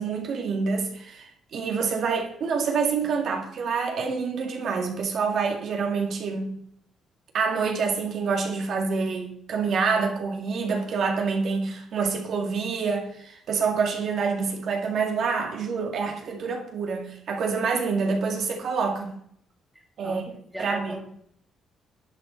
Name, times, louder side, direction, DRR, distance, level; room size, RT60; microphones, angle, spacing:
voice 1, 0.0-6.6 7.3-19.2 20.0-20.2 20.6-21.0, right 5 dB, 65° right, 2.1 m, -27 dB
voice 2, 19.7-21.0, equal, ahead, 2.3 m, -39 dB
11.5 x 7.9 x 4.3 m
cardioid pair, 90°, 0 cm